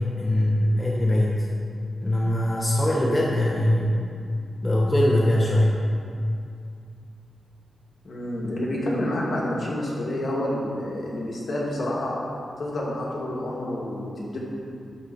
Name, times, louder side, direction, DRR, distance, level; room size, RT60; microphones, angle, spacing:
voice 1, 0.0-1.4 2.0-4.0 4.6-5.8, left 1 dB, 20° left, -4 dB, 1.1 m, -22 dB
voice 2, 8.0-12.2 12.6-14.4, left 1 dB, 55° left, -5 dB, 2.4 m, -28 dB
11.5 x 4.1 x 6.4 m, 2.4 s
cardioid pair, 75°, 0 cm